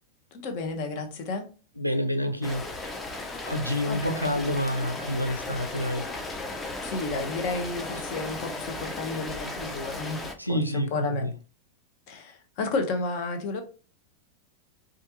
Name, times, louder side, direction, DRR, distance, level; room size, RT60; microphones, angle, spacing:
voice 1, 0.3-1.5 3.9-4.2 6.8-10.2 10.5-11.3 12.1-13.6, left 3 dB, 45° left, 0.8 m, -32 dB
voice 2, 1.8-2.7 3.5-6.1 10.4-11.3, left 1 dB, 90° right, 0.5 m, -28 dB
Rain, 2.4-10.3, left 2 dB, 15° left, 0.6 m, -36 dB
4.4 x 2.4 x 2.7 m
figure-of-eight pair, 90°, 0 cm